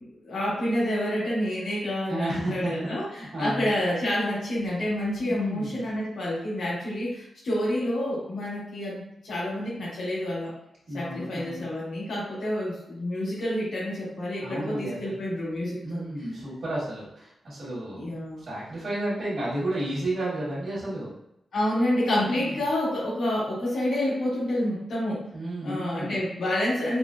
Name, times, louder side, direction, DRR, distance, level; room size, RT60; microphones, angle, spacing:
voice 1, 0.2-3.1 3.4-10.5 10.9-16.1 17.9-18.4 21.5-25.2 25.6-27.0, left 1 dB, 85° left, -9 dB, 1.4 m, -28 dB
voice 2, 2.1-2.7 3.1-3.7 5.2-5.8 10.9-11.6 14.4-15.2 15.8-18.1 18.4-21.1 22.4-22.6 25.3-26.2, right 1 dB, 55° right, -10 dB, 1.4 m, -32 dB
4.8 x 2.0 x 2.4 m, 0.80 s
wide cardioid pair, 160°, 0 cm